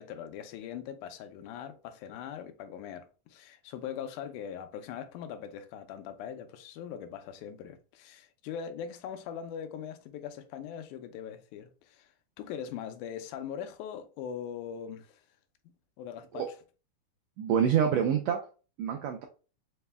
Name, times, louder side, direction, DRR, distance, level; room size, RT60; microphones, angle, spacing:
voice 1, 0.0-12.1 12.4-15.2 16.0-16.6, left 8 dB, 85° left, 2.1 m, -41 dB
voice 2, 17.4-18.4 18.8-19.3, right 8 dB, 85° right, 1.5 m, -27 dB
5.0 x 2.1 x 3.4 m
omnidirectional pair, 3.5 m